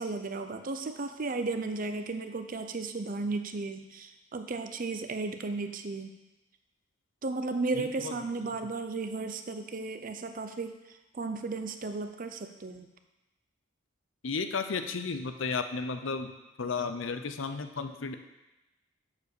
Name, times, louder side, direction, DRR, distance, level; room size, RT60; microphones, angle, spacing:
voice 1, 0.0-6.1 7.2-12.9, right 3 dB, 45° right, 7 dB, 0.6 m, -34 dB
voice 2, 7.7-8.1 14.2-18.2, left 4 dB, 70° left, 8 dB, 0.6 m, -33 dB
6.8 x 5.2 x 6.7 m, 1.0 s
head